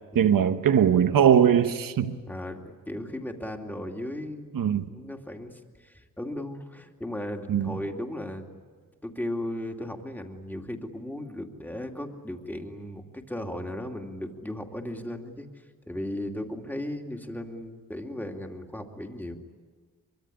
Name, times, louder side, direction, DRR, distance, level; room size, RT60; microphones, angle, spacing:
voice 1, 0.1-2.2 4.5-4.9 7.5-7.8, right 8 dB, 80° right, 1.2 m, -21 dB
voice 2, 2.3-8.6 9.0-15.5 15.8-19.4, left 1 dB, 5° left, 2.7 m, -36 dB
24.0 x 24.0 x 9.9 m
wide cardioid pair, 95°, 33 cm